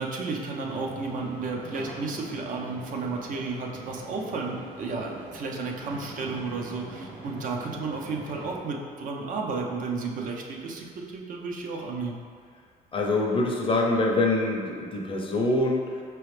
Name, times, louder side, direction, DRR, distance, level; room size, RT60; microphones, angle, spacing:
voice 1, 0.0-12.2, right 3 dB, 55° right, 0 dB, 0.6 m, -33 dB
sound 1, 0.6-8.6, right 2 dB, 75° right, 1.0 m, -43 dB
voice 2, 12.9-15.8, left 2 dB, 30° left, -1 dB, 0.6 m, -24 dB
4.7 x 3.1 x 3.2 m, 2.1 s
cardioid pair, 110°, 17 cm